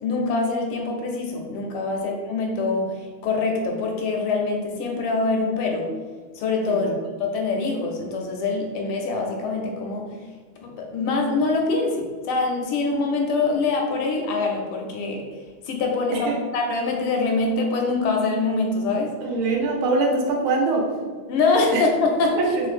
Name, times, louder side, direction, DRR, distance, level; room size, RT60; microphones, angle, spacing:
voice 1, 0.0-2.9 3.2-5.9 6.3-6.9 7.2-10.1 10.6-15.2 15.7-19.1 21.3-22.4, left 3 dB, 80° left, 1 dB, 1.4 m, -24 dB
voice 2, 19.2-20.9 21.7-21.8 22.4-22.7, right 3 dB, 80° right, 0 dB, 1.4 m, -23 dB
3.2 x 2.9 x 2.4 m, 1.5 s
omnidirectional pair, 2.4 m